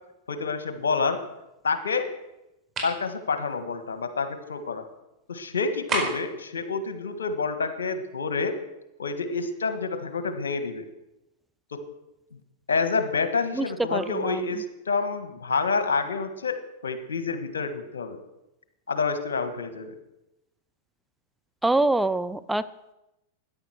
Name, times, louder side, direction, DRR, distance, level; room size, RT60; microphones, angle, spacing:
voice 1, 0.3-1.2 1.6-2.1 2.8-4.8 5.3-8.6 9.0-10.8 11.7-11.8 12.7-18.2 18.9-20.0, left 4 dB, 85° left, 9 dB, 1.6 m, -28 dB
sound 1, 2.7-3.0 5.9-6.4, right 3 dB, 30° right, 4.6 m, -29 dB
voice 2, 13.9-14.4 21.6-22.6, right 2 dB, 5° right, 13 dB, 0.5 m, -24 dB
13.5 x 10.0 x 6.3 m, 0.91 s
hypercardioid pair, 105°, 0 cm